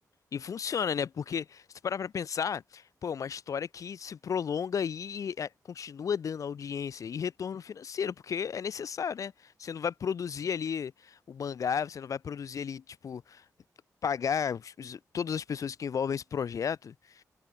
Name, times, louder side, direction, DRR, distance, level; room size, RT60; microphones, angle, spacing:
voice 1, 0.3-13.4 14.0-17.2, left 7 dB, 60° left, 0.5 m, -33 dB
cardioid pair, 75°, 6 cm